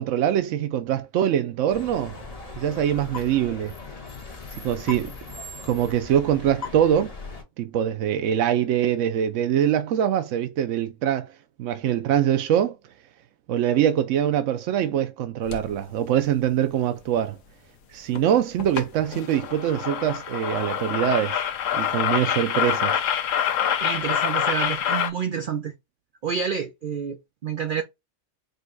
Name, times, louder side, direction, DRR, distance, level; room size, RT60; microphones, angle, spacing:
voice 1, 0.0-2.2 2.6-3.7 4.5-5.1 5.6-7.2 7.6-11.3 11.6-12.8 13.5-17.4 17.9-21.4 21.7-23.0, right 10 dB, 80° right, 0.9 m, -23 dB
sound 1, 1.7-7.4, left 3 dB, 35° left, 1.0 m, -39 dB
sound 2, 15.5-15.7 18.2-18.3 18.6-18.8 19.1-25.1, left 9 dB, 90° left, 1.0 m, -26 dB
voice 2, 23.8-25.7 26.2-27.8, right 6 dB, 50° right, 0.7 m, -28 dB
5.3 x 2.2 x 3.8 m
omnidirectional pair, 1.3 m